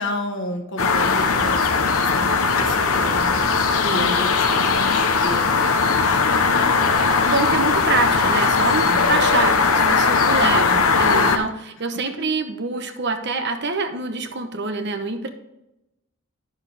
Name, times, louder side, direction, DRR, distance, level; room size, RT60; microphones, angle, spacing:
voice 1, 0.0-3.5 3.9-6.9 8.8-9.2 10.3-11.0 11.9-12.0, left 2 dB, 60° left, 5 dB, 1.4 m, -32 dB
sound 1, 0.8-11.4, left 4 dB, 75° left, 0.9 m, -19 dB
voice 2, 3.8-4.2 7.3-15.3, right 3 dB, 50° right, 6 dB, 1.0 m, -26 dB
10.5 x 6.8 x 3.4 m, 0.91 s
head